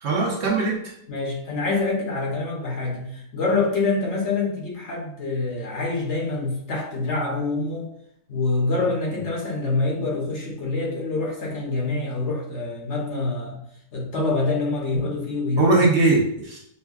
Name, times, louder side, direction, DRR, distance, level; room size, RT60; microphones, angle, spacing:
voice 1, 0.0-0.9 14.2-14.3 15.0-15.1 15.6-16.6, right 3 dB, 55° right, -3 dB, 1.0 m, -21 dB
voice 2, 1.1-7.9 8.3-13.6 13.9-15.8, left 3 dB, 60° left, -2 dB, 1.0 m, -26 dB
5.4 x 2.2 x 2.3 m, 0.71 s
omnidirectional pair, 1.5 m